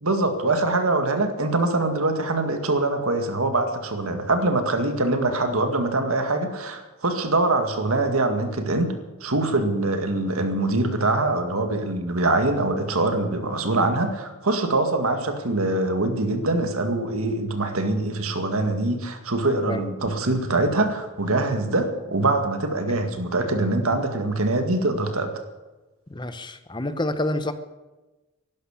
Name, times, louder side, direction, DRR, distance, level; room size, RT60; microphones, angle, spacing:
voice 1, 0.0-25.4, right 2 dB, 85° right, 6 dB, 2.0 m, -24 dB
voice 2, 26.1-27.5, left 1 dB, 20° left, 10 dB, 0.8 m, -28 dB
11.5 x 11.5 x 9.9 m, 1.1 s
head